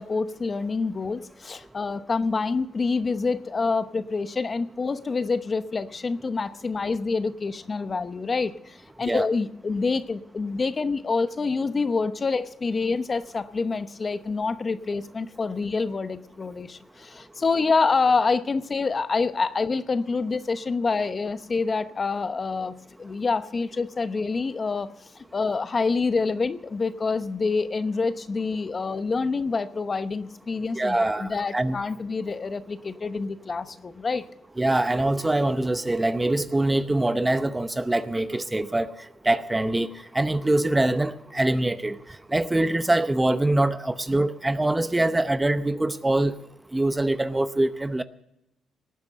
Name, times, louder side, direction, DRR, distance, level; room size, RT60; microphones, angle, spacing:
voice 1, 0.0-22.7 23.0-24.9 25.1-34.2, left 4 dB, 35° left, 12 dB, 0.9 m, -27 dB
voice 2, 30.7-31.8 34.6-38.9 39.2-39.9 40.1-42.0 42.3-46.3 46.7-48.0, right 1 dB, 15° right, 12 dB, 0.8 m, -24 dB
18.5 x 9.4 x 6.7 m, 0.83 s
cardioid pair, 90°, 0 cm